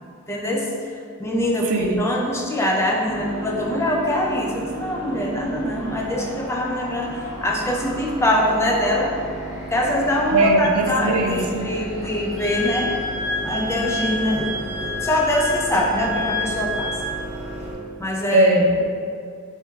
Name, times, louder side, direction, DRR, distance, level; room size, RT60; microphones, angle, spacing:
voice 1, 0.3-0.7 1.2-1.7 2.0-7.1 7.4-9.2 9.7-12.9 13.4-16.9 18.0-18.5, left 1 dB, 10° left, -1 dB, 0.3 m, -23 dB
sound 1, 3.0-17.7, right 2 dB, 85° left, 1.0 m, -34 dB
voice 2, 10.3-11.6 18.3-18.8, right 2 dB, 90° right, 3 dB, 0.4 m, -19 dB
Wind instrument woodwind instrument, 12.4-17.1, left 2 dB, 60° left, 1.3 m, -29 dB
3.3 x 3.2 x 3.2 m, 2.2 s
head